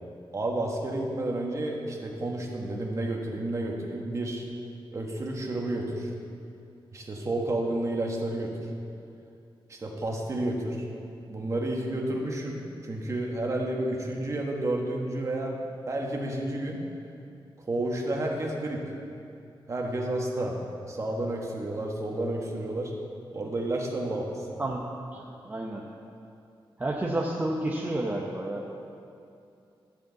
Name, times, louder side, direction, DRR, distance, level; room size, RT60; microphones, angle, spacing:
voice 1, 0.3-4.4 4.9-6.1 6.9-8.7 9.7-10.8 11.3-15.6 15.9-16.8 17.7-18.9 19.7-20.6 20.9-22.9 23.3-24.6, right 1 dB, 35° right, 0 dB, 1.4 m, -31 dB
voice 2, 25.1-25.8 26.8-28.9, right 1 dB, 20° right, -2 dB, 0.7 m, -31 dB
13.0 x 5.0 x 8.0 m, 2.6 s
wide cardioid pair, 160°, 9 cm